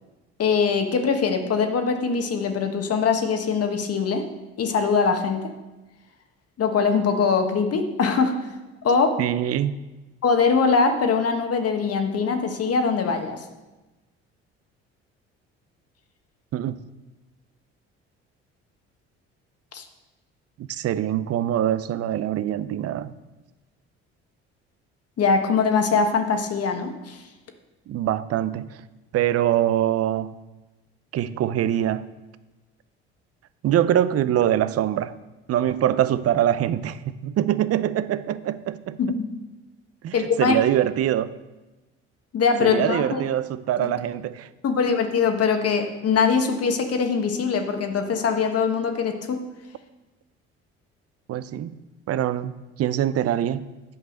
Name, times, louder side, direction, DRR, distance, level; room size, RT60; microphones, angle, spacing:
voice 1, 0.4-4.3 4.6-5.4 6.6-8.3 8.8-9.2 10.2-13.4 19.7-19.9 25.2-27.2 39.0-39.2 40.1-40.6 42.3-43.2 43.8-43.9 44.6-49.4, left 5 dB, 50° left, 1.5 m, -22 dB
voice 2, 9.2-9.8 16.5-16.8 20.6-23.1 27.9-28.7 29.1-30.3 31.1-32.1 33.6-35.1 35.5-39.0 40.0-41.3 42.6-44.5 51.3-51.8 52.1-53.6, right 11 dB, 50° right, 0.6 m, -24 dB
9.2 x 5.4 x 6.5 m
hypercardioid pair, 60°, 32 cm